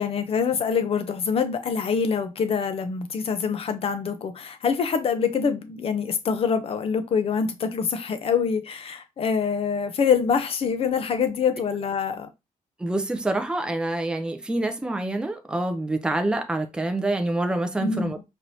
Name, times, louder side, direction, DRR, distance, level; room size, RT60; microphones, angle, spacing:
voice 1, 0.0-12.3 17.8-18.2, left 6 dB, 40° left, 0.6 m, -25 dB
voice 2, 12.8-18.2, right 2 dB, 5° right, 0.5 m, -26 dB
4.4 x 3.2 x 2.7 m
wide cardioid pair, 160°, 14 cm